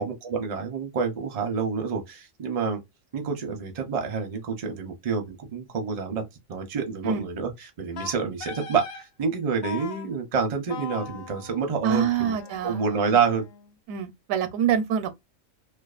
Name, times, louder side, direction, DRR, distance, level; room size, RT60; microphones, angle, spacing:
voice 1, 0.0-2.8 3.1-6.2 6.5-12.3 12.6-13.4, right 5 dB, 45° right, 0.5 m, -28 dB
Wind instrument woodwind instrument, 8.0-9.1 9.6-10.1 10.7-13.7, left 6 dB, 65° left, 0.7 m, -40 dB
voice 2, 11.8-13.2 13.9-15.1, right 8 dB, 85° right, 1.0 m, -26 dB
2.5 x 2.2 x 2.4 m
omnidirectional pair, 1.3 m